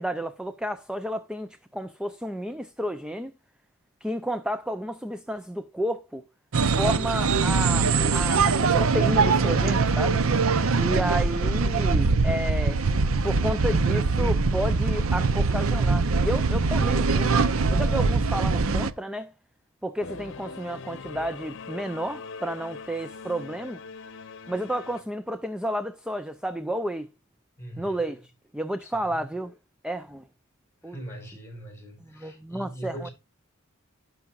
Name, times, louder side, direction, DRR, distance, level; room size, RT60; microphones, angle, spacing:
voice 1, 0.0-3.3 4.0-6.2 6.7-10.2 10.8-12.8 13.2-17.3 17.7-19.3 19.8-23.8 24.5-27.1 27.8-29.6 29.8-30.2 30.8-31.0 32.0-33.1, equal, 5° right, 0.5 m, -31 dB
sound 1, 6.5-18.9, right 4 dB, 70° right, 0.7 m, -22 dB
Singing / Musical instrument, 20.0-25.0, left 4 dB, 60° left, 0.9 m, -41 dB
voice 2, 27.6-28.0 28.8-29.2 30.8-33.1, right 1 dB, 15° left, 4.2 m, -41 dB
16.0 x 5.9 x 2.5 m
head